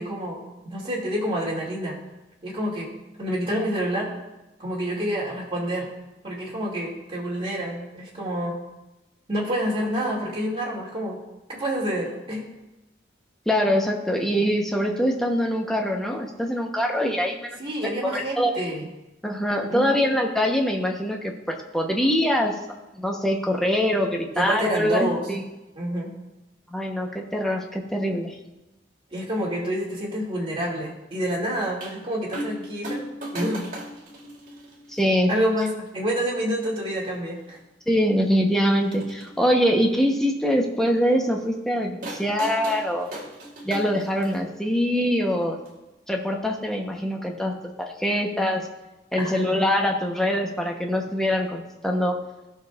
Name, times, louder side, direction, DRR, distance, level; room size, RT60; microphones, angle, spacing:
voice 1, 0.0-2.0 2.4-2.9 3.2-4.1 4.6-5.9 6.2-8.6 9.3-11.2 11.5-12.5 17.6-18.9 19.7-20.0 24.3-25.2 25.7-26.1 29.1-33.1 33.3-33.6 35.3-37.6 49.2-49.5, equal, 30° right, -4 dB, 2.4 m, -28 dB
voice 2, 13.5-17.6 18.0-18.5 19.2-22.5 23.0-25.4 26.7-28.4 34.9-35.3 37.9-43.1 43.6-45.6 46.1-48.7 49.1-52.2, equal, 5° left, 1 dB, 0.9 m, -24 dB
sound 1, 31.8-31.9 32.3-32.6 32.8-35.0 35.9-36.0 37.0-37.1 37.4-37.5 38.7-39.3 42.0-44.4 45.7-45.8, right 1 dB, 50° right, 1.9 m, -36 dB
16.5 x 6.2 x 2.4 m, 0.99 s
head